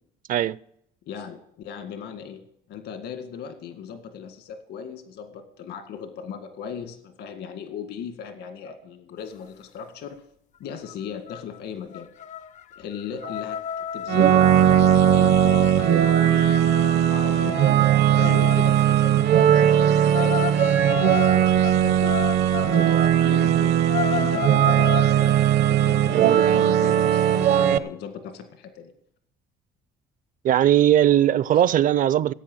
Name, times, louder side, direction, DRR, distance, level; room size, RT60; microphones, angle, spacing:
voice 1, 1.1-10.2 10.6-12.1 12.8-22.1 22.6-23.8 24.1-24.5 24.7-25.4 25.7-28.9 31.5-31.6, left 7 dB, 75° left, 1.9 m, -38 dB
sound 1, 10.9-11.0 11.3-11.6 11.9-18.8 20.1-22.9 23.3-23.4 23.8-25.1, left 9 dB, 45° left, 0.4 m, -32 dB
sound 2, 14.1-27.8, right 10 dB, 75° right, 1.0 m, -19 dB
voice 2, 26.1-26.4 30.4-32.3, right 11 dB, 55° right, 0.5 m, -19 dB
16.5 x 8.7 x 7.8 m
cardioid pair, 110°, 17 cm